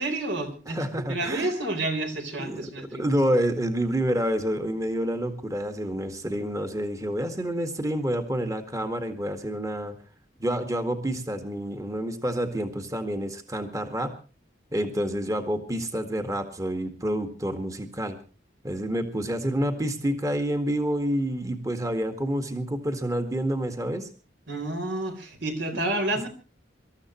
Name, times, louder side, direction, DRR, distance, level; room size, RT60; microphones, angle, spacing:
voice 1, 0.0-0.8 1.1-3.1 24.5-26.3, right 2 dB, 65° right, 6 dB, 4.0 m, -29 dB
voice 2, 0.7-1.5 2.4-9.9 10.4-14.1 14.7-18.2 18.6-24.1, equal, 20° right, 7 dB, 1.8 m, -28 dB
26.0 x 14.0 x 3.1 m, 0.35 s
head